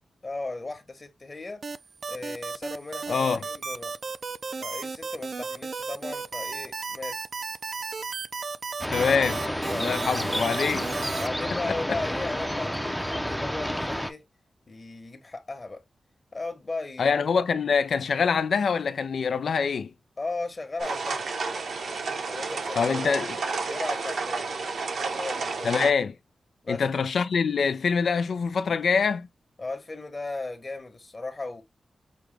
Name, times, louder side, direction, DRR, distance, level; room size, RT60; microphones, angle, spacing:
voice 1, 0.2-1.6 2.1-3.9 4.6-7.2 8.9-9.1 9.5-10.1 11.2-14.2 14.7-15.8 16.3-17.1 20.2-21.2 22.3-23.0 23.6-24.6 25.0-25.8 26.6-26.8 29.6-31.6, left 3 dB, 35° left, 1.1 m, -36 dB
sound 1, 1.6-11.3, right 4 dB, 50° right, 0.5 m, -34 dB
voice 2, 3.1-3.4 8.9-9.4 9.8-10.9 11.9-12.0 17.0-19.9 22.8-23.3 25.6-26.1 26.7-29.3, left 5 dB, 75° left, 0.4 m, -25 dB
sound 2, 8.8-14.1, equal, ahead, 0.6 m, -30 dB
sound 3, 20.8-25.9, right 4 dB, 85° right, 1.2 m, -31 dB
6.1 x 2.2 x 3.4 m
wide cardioid pair, 115°, 0 cm